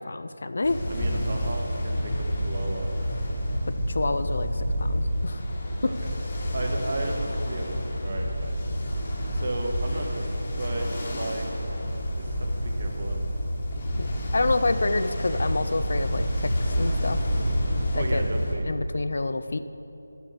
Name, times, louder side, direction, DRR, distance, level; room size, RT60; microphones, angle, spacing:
voice 1, 0.0-0.8 3.9-5.4 14.0-17.2 17.9-18.2 18.7-19.6, left 2 dB, 50° left, 11 dB, 0.3 m, -28 dB
Ocean, 0.6-18.5, equal, 30° left, 1.2 m, -28 dB
voice 2, 0.9-2.9 5.8-6.1 6.5-8.6 9.3-10.3 10.6-11.5 12.1-13.2 14.4-14.5 17.9-18.7, right 2 dB, 40° right, 2 dB, 1.0 m, -34 dB
6.9 x 6.5 x 6.8 m, 3.0 s
figure-of-eight pair, 160°, 0 cm